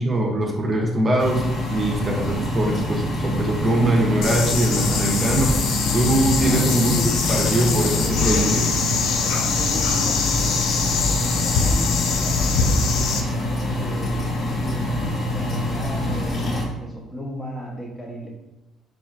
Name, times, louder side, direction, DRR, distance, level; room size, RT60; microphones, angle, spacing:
voice 1, 0.0-1.4 1.7-5.6 5.9-7.0 7.3-8.8, right 1 dB, 30° right, -1 dB, 0.7 m, -22 dB
sound 1, 1.2-16.7, left 1 dB, 55° left, 1.0 m, -26 dB
sound 2, 4.2-13.2, left 4 dB, 75° left, 0.5 m, -23 dB
voice 2, 6.5-7.1 7.4-8.4 9.2-18.3, equal, 20° left, -1 dB, 1.0 m, -36 dB
4.2 x 3.2 x 2.5 m, 0.99 s
cardioid pair, 90°, 0 cm